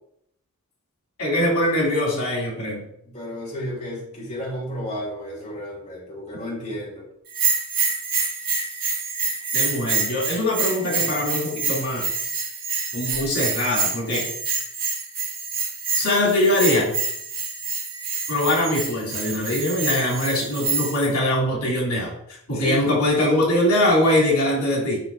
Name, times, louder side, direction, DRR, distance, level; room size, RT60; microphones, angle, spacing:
voice 1, 1.2-2.9 9.5-12.0 12.9-14.3 15.9-16.9 18.3-22.1 22.5-25.0, left 1 dB, 85° left, -4 dB, 3.0 m, -22 dB
voice 2, 3.0-7.1 22.5-22.9, equal, 30° left, -6 dB, 2.8 m, -32 dB
Bell, 7.3-21.1, right 5 dB, 45° right, 2.0 m, -27 dB
10.5 x 5.9 x 2.7 m, 0.74 s
head